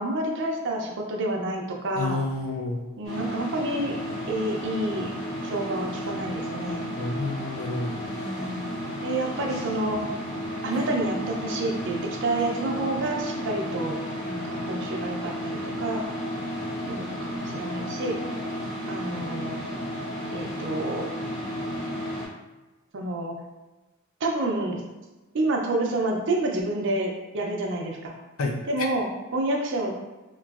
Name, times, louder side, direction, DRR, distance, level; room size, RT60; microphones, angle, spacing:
voice 1, 0.0-2.2 3.0-3.9 4.3-5.1 5.4-6.9 8.0-8.7 9.0-10.0 10.6-14.0 14.2-16.0 16.9-18.1 18.9-19.6 20.3-21.1 22.9-23.3 24.2-24.8 25.3-28.1 28.7-29.9, right 2 dB, 55° right, 1 dB, 0.5 m, -29 dB
voice 2, 2.0-2.8 6.9-8.1 28.4-28.9, left 3 dB, 70° left, 2 dB, 0.4 m, -30 dB
sound 1, 3.0-22.3, equal, 30° left, 1.1 m, -33 dB
3.0 x 2.5 x 2.4 m, 1.1 s
head